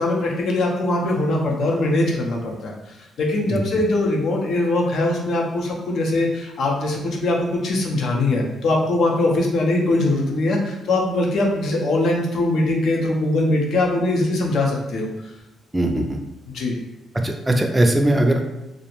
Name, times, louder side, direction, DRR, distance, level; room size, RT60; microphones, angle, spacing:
voice 1, 0.0-15.1 16.5-16.8, left 2 dB, 65° left, -1 dB, 0.6 m, -21 dB
voice 2, 15.7-16.2 17.2-18.4, right 1 dB, 15° right, 3 dB, 0.4 m, -19 dB
2.4 x 2.0 x 2.9 m, 0.95 s
cardioid pair, 90°, 0 cm